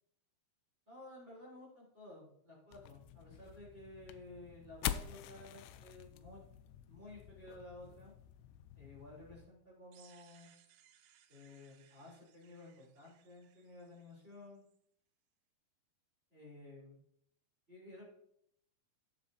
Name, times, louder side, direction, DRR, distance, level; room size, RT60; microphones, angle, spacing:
voice 1, 0.9-6.4 6.9-8.1 8.7-10.5 11.3-14.6 16.3-17.0 17.7-18.0, left 2 dB, 15° right, -6 dB, 3.0 m, -54 dB
sound 1, 2.7-9.5, left 12 dB, 80° left, 2.6 m, -46 dB
sound 2, 9.9-14.8, right 10 dB, 80° right, 2.0 m, -67 dB
16.5 x 7.5 x 2.7 m, 0.72 s
omnidirectional pair, 5.1 m